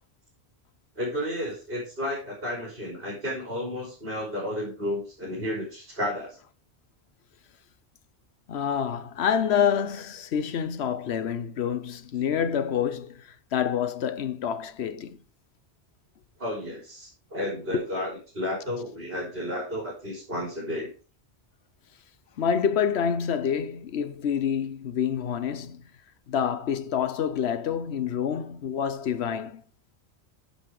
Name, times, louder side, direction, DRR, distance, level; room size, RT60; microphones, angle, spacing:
voice 1, 1.0-6.4 16.4-20.9, left 1 dB, 60° right, 3.9 m, -32 dB
voice 2, 8.5-15.2 17.7-17.9 22.4-25.8 26.3-29.6, left 8 dB, 80° left, 1.0 m, -27 dB
10.5 x 5.8 x 4.8 m
omnidirectional pair, 1.1 m